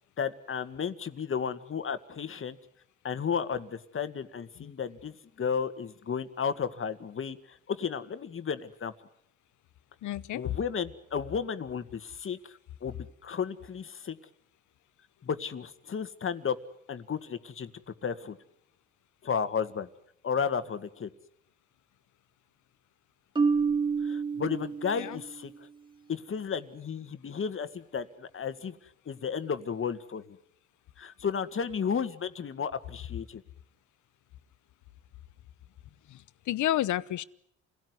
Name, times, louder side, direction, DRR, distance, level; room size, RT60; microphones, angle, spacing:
voice 1, 0.2-2.6 3.0-8.9 10.3-14.2 15.2-16.6 16.9-17.7 18.0-18.4 19.2-19.9 20.2-21.1 24.0-25.5 26.1-28.8 29.1-30.4 31.0-33.4, left 6 dB, 45° left, 1.9 m, -33 dB
voice 2, 10.0-10.6 24.8-25.2 36.1-37.2, left 13 dB, 75° left, 1.0 m, -31 dB
Marimba xylophone, 23.3-25.4, right 5 dB, 15° right, 2.6 m, -28 dB
27.5 x 17.0 x 9.7 m
cardioid pair, 90°, 30 cm